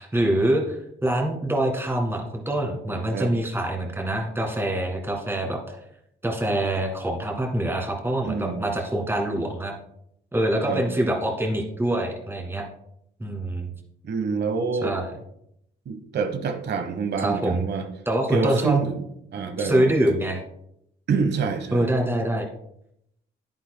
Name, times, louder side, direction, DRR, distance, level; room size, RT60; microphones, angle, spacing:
voice 1, 0.0-5.8 6.2-9.7 10.3-12.7 13.2-13.7 14.8-15.1 17.2-17.6 18.1-18.8 19.6-20.4 21.7-22.5, right 1 dB, 10° right, 1 dB, 1.9 m, -25 dB
voice 2, 8.2-8.7 10.7-10.9 14.0-14.9 15.9-17.9 18.3-19.0 19.3-19.9 21.1-21.9, right 5 dB, 60° right, 8 dB, 1.2 m, -26 dB
10.0 x 9.4 x 2.2 m, 0.77 s
cardioid pair, 90°, 20 cm